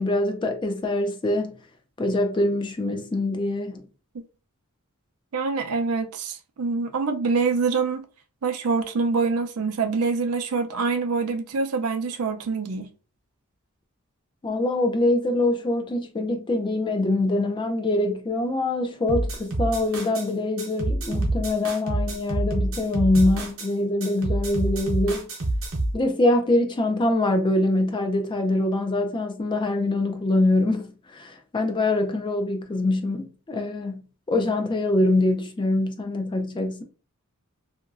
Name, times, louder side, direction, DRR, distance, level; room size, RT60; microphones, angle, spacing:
voice 1, 0.0-1.5 2.0-3.8 14.4-25.3 25.9-34.0 34.3-36.8, left 2 dB, 20° left, 0.4 m, -24 dB
voice 2, 5.3-8.0 8.4-12.9, right 4 dB, 90° right, 0.5 m, -25 dB
sound 1, 19.1-20.3 20.6-23.7 24.0-25.9, right 1 dB, 65° right, 0.9 m, -27 dB
2.9 x 2.5 x 2.4 m
head